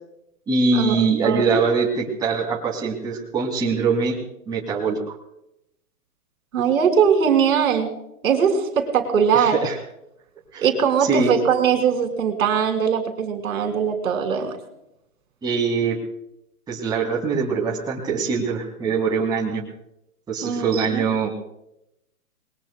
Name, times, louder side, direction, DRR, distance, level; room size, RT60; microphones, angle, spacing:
voice 1, 0.5-4.2 4.5-5.2 9.3-9.8 10.5-10.7 11.0-11.4 15.4-16.0 16.7-19.6 20.3-21.3, right 4 dB, 10° right, -4 dB, 2.4 m, -23 dB
voice 2, 1.2-1.6 6.5-7.9 8.2-9.6 10.6-14.5 20.4-21.0, right 7 dB, 65° right, 6 dB, 3.0 m, -20 dB
28.5 x 21.0 x 2.2 m, 0.83 s
hypercardioid pair, 160°, 45 cm